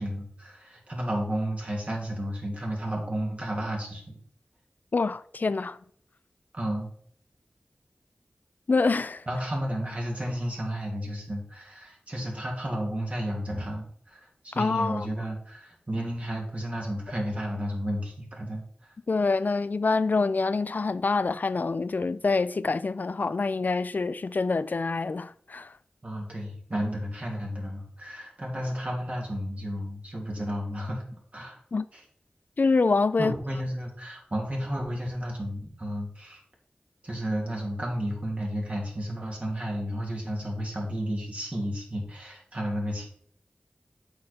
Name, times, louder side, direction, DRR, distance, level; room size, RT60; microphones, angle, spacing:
voice 1, 0.0-4.2 6.5-6.9 9.3-18.6 26.0-31.0 31.3-31.6 31.9-32.0 33.2-36.4 37.0-43.1, equal, 40° right, 2.6 m, -32 dB
voice 2, 4.9-5.8 8.7-9.2 14.5-15.1 19.1-25.7 31.7-31.9 32.6-33.3, left 3 dB, 60° left, 0.3 m, -26 dB
8.0 x 5.1 x 4.3 m
wide cardioid pair, 55°, 3 cm